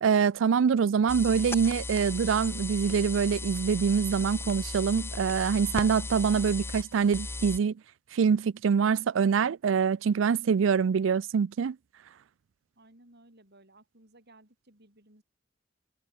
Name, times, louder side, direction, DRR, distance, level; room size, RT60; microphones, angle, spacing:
voice 1, 0.0-7.7 8.1-11.8, right 6 dB, 75° right, 0.4 m, -25 dB
sound 1, 1.1-7.6, left 3 dB, 10° left, 0.4 m, -36 dB
voice 2, 12.8-15.2, right 1 dB, 60° right, 7.7 m, -58 dB
head